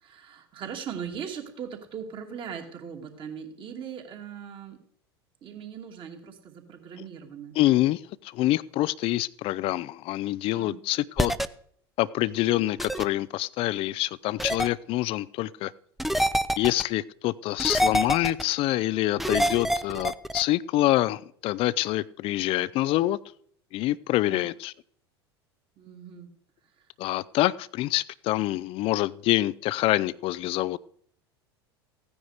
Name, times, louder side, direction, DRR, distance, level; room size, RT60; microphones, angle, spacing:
voice 1, 0.0-4.8 5.4-7.6 10.5-10.8 24.2-24.5 25.8-26.3, right 7 dB, 40° right, 4 dB, 2.5 m, -39 dB
voice 2, 7.6-11.3 12.0-15.7 16.6-23.2 23.7-24.7 27.0-30.8, left 16 dB, 45° left, 20 dB, 0.5 m, -26 dB
sound 1, 11.2-11.5 12.8-13.0 14.4-14.7 16.0-16.8 17.6-18.4 19.2-20.4, equal, ahead, 0.6 m, -25 dB
15.5 x 9.7 x 5.0 m, 0.63 s
figure-of-eight pair, 80°, 14 cm